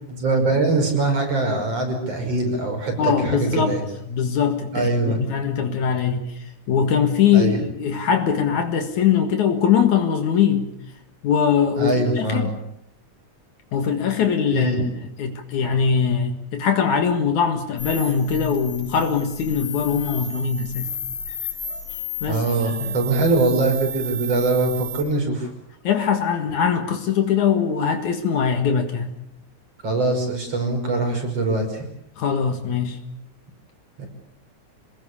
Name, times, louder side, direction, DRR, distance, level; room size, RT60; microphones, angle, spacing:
voice 1, 0.1-3.8 4.7-5.2 7.3-7.7 11.8-12.5 14.5-14.8 22.3-25.5 29.8-31.9 34.0-34.1, right 2 dB, 50° right, 4 dB, 6.9 m, -22 dB
voice 2, 3.0-3.8 4.1-10.7 11.2-12.5 13.7-14.7 15.2-20.9 22.2-23.0 25.8-29.2 32.2-33.0, left 7 dB, 75° left, 5 dB, 3.2 m, -21 dB
sound 1, 17.8-25.0, left 1 dB, 50° left, 6.7 m, -32 dB
28.0 x 20.0 x 7.0 m, 0.80 s
omnidirectional pair, 3.5 m